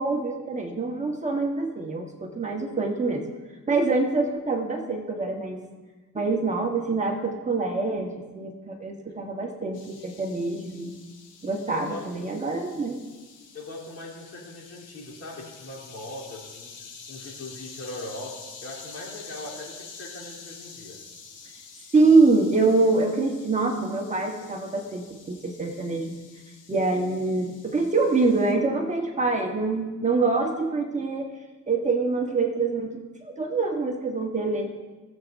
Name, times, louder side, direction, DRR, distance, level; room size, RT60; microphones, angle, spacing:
voice 1, 0.0-3.2 3.7-5.6 6.1-10.9 11.4-13.0 21.9-26.1 26.7-31.3 31.7-34.7, right 3 dB, 25° right, 1 dB, 1.3 m, -25 dB
sound 1, 9.7-28.5, left 5 dB, 85° left, 1.7 m, -47 dB
voice 2, 11.7-12.3 13.5-16.7 17.1-18.4 18.6-21.0, left 1 dB, 55° left, -5 dB, 3.5 m, -40 dB
19.0 x 7.5 x 2.7 m, 1.3 s
cardioid pair, 90°, 30 cm